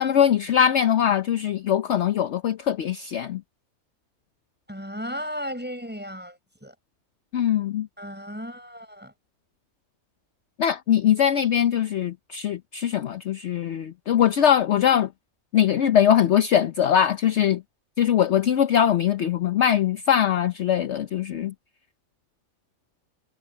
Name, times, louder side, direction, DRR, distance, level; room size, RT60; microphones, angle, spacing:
voice 1, 0.0-3.4 7.3-7.9 10.6-15.1 15.5-17.6 18.0-21.5, left 9 dB, 60° left, 1.0 m, -21 dB
voice 2, 4.7-6.7 8.0-9.1, equal, 5° right, 7.2 m, -35 dB
omnidirectional pair, 1.5 m